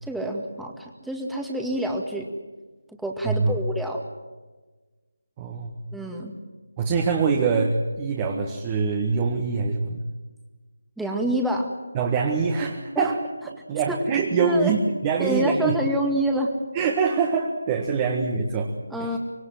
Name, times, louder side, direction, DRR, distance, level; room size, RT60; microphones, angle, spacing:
voice 1, 0.0-2.3 3.0-4.0 5.9-6.3 11.0-11.7 13.0-13.1 13.9-14.0 14.4-14.7 15.2-16.5 18.9-19.2, right 1 dB, ahead, 0 dB, 2.0 m, -27 dB
voice 2, 3.3-3.6 5.4-5.7 6.8-10.0 11.9-15.8 16.7-18.7 19.0-19.2, right 5 dB, 20° right, 1 dB, 1.8 m, -24 dB
25.5 x 21.5 x 7.7 m, 1.3 s
figure-of-eight pair, 165°, 0 cm